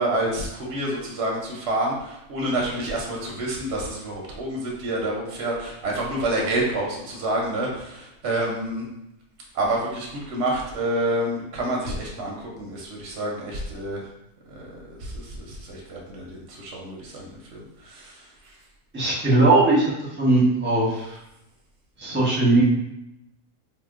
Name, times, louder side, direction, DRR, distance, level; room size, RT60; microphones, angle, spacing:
voice 1, 0.0-8.9 9.5-14.0 14.5-18.3, right 1 dB, 60° right, -2 dB, 0.8 m, -28 dB
voice 2, 18.9-19.9 20.2-21.2 22.0-22.6, right 2 dB, 10° right, -7 dB, 0.6 m, -19 dB
2.8 x 2.0 x 3.5 m, 0.86 s
omnidirectional pair, 1.6 m